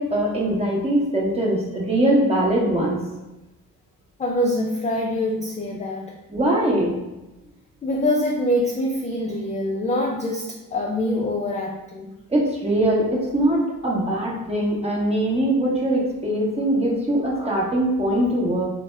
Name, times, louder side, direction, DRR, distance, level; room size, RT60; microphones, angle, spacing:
voice 1, 0.0-3.0 6.3-6.9 12.3-18.7, right 1 dB, 15° right, -3 dB, 0.9 m, -22 dB
voice 2, 4.2-6.1 7.8-12.1, left 1 dB, 20° left, 0 dB, 0.3 m, -24 dB
2.7 x 2.1 x 3.3 m, 0.99 s
cardioid pair, 70°, 37 cm